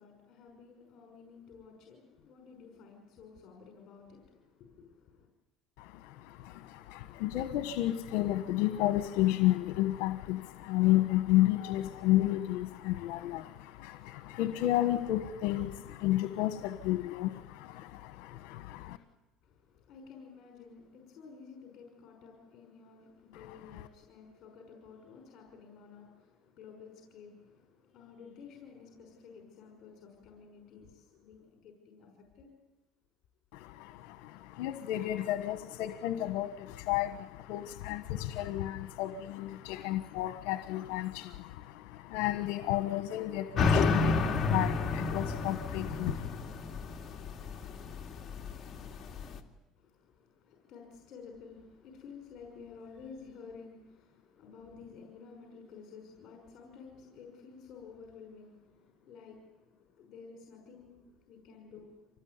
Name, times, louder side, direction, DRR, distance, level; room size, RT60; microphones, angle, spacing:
voice 1, 0.0-5.3 19.4-32.1 32.4-32.5 49.8-62.1, left 5 dB, 50° left, 2 dB, 5.7 m, -52 dB
voice 2, 5.8-19.0 23.3-23.8 33.5-46.4, left 15 dB, 75° left, 10 dB, 1.3 m, -32 dB
sound 1, 43.6-49.4, left 4 dB, 35° left, 2.5 m, -31 dB
25.5 x 19.5 x 9.7 m, 1.1 s
supercardioid pair, 110°, 0 cm